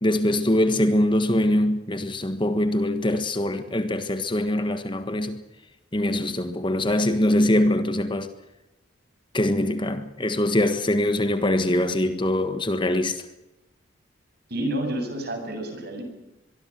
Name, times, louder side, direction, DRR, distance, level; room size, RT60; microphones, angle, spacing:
voice 1, 0.0-5.4 5.9-8.3 9.3-13.3, left 1 dB, 25° left, 1.5 m, -23 dB
voice 2, 14.5-16.0, right 1 dB, 55° right, 7.9 m, -29 dB
24.5 x 23.0 x 6.1 m
head